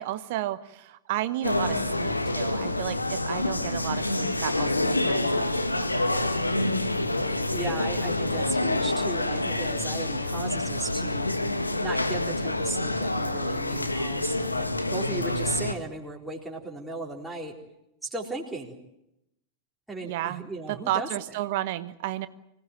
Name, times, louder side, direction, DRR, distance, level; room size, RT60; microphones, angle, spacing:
voice 1, 0.0-6.2 20.0-22.3, right 14 dB, 50° right, 13 dB, 1.1 m, -33 dB
sound 1, 1.4-15.7, left 2 dB, 85° left, 1.8 m, -27 dB
voice 2, 7.5-11.3 11.8-17.5 18.1-18.7 19.9-21.1, right 2 dB, 5° right, -3 dB, 4.2 m, -36 dB
25.5 x 18.0 x 9.3 m, 0.85 s
figure-of-eight pair, 90°, 0 cm